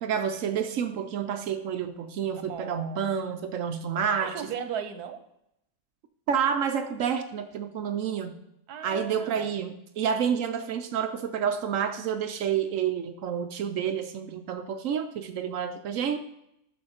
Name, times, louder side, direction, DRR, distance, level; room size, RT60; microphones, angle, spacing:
voice 1, 0.0-4.4 6.3-8.4 8.8-16.2, right 7 dB, 70° right, 8 dB, 0.9 m, -29 dB
voice 2, 2.5-3.1 4.2-5.2 8.7-9.5, right 8 dB, 85° right, 9 dB, 1.3 m, -37 dB
11.0 x 3.7 x 4.2 m, 0.79 s
omnidirectional pair, 1.6 m